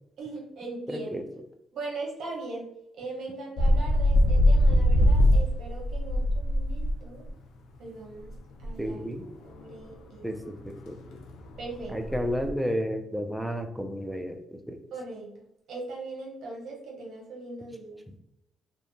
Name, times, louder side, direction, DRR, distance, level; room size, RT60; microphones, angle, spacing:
voice 1, 0.2-1.2 1.7-7.3 7.8-8.3 8.6-9.0 9.4-10.3 11.6-12.0 14.9-18.0, right 3 dB, 70° right, -2 dB, 0.8 m, -39 dB
voice 2, 0.9-1.2 8.8-9.3 10.2-11.0 11.9-14.8, equal, 5° right, 5 dB, 0.4 m, -32 dB
sound 1, 3.6-7.0 7.3-7.4 8.3-8.4 8.6-8.7 9.1-9.2 9.5-9.7 10.4-10.5 10.7-12.5, left 1 dB, 85° left, 0.4 m, -22 dB
2.7 x 2.1 x 2.6 m, 0.80 s
cardioid pair, 90°, 0 cm